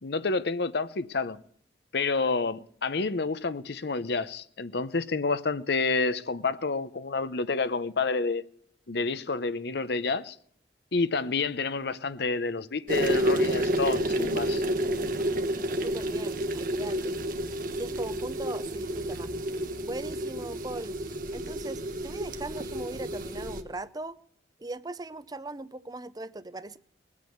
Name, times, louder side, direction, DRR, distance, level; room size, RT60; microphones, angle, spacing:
voice 1, 0.0-1.4 1.9-8.4 8.9-10.4 10.9-14.6, left 4 dB, 65° left, 0.8 m, -29 dB
sound 1, 12.9-23.6, right 1 dB, 50° right, 1.4 m, -30 dB
voice 2, 15.8-17.2 17.7-19.3 19.8-21.0 21.3-24.2 24.6-26.8, right 2 dB, 20° right, 0.6 m, -39 dB
21.0 x 8.5 x 7.9 m
head